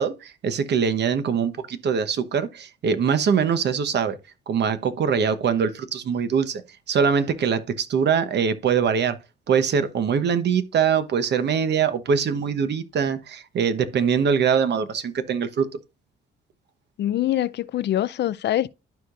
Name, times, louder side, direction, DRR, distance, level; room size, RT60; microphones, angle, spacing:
voice 1, 0.0-4.2 4.5-6.6 6.9-9.2 9.5-15.7, right 6 dB, 60° right, 1.0 m, -23 dB
voice 2, 17.0-18.7, left 12 dB, 60° left, 0.5 m, -24 dB
12.0 x 4.9 x 2.5 m
cardioid pair, 90°, 20 cm